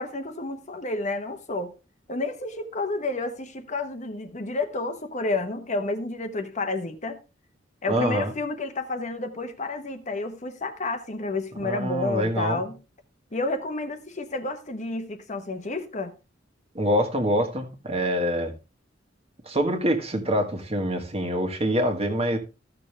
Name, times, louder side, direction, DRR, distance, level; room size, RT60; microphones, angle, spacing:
voice 1, 0.0-1.7 2.1-7.2 7.8-12.8 13.3-16.1, left 2 dB, 40° left, 1.1 m, -30 dB
voice 2, 7.9-8.3 11.6-12.6 16.7-18.5 19.4-22.4, equal, 30° right, 1.7 m, -25 dB
14.5 x 6.6 x 3.4 m
head